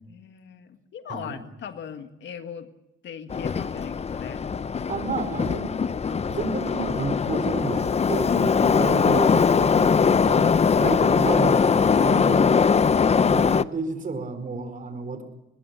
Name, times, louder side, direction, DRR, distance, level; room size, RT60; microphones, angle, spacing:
voice 1, 0.1-2.7 3.0-4.4 8.3-8.9, left 8 dB, 65° left, 8 dB, 1.8 m, -38 dB
voice 2, 1.1-1.4 4.9-12.5 13.2-15.2, right 4 dB, 40° right, 8 dB, 4.9 m, -31 dB
Subway metro underground, 3.3-13.6, left 6 dB, 30° left, 0.7 m, -21 dB
22.0 x 21.0 x 7.1 m, 0.93 s
cardioid pair, 90°, 20 cm